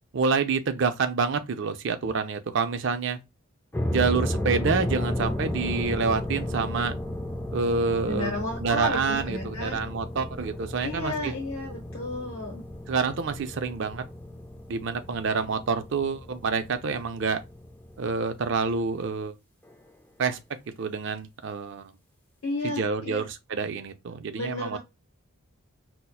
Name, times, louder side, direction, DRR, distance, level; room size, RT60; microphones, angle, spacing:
voice 1, 0.1-3.2 3.9-6.9 7.5-8.3 8.6-11.3 12.9-14.0 14.7-17.4 18.0-19.3 20.2-20.4 20.8-21.9 22.6-24.8, right 4 dB, 55° right, 0.4 m, -27 dB
sound 1, 3.7-18.9, left 1 dB, 10° left, 0.4 m, -34 dB
voice 2, 8.0-9.8 10.8-12.6 22.4-23.2 24.4-24.8, left 2 dB, 65° left, 0.9 m, -32 dB
5.5 x 2.1 x 2.3 m
head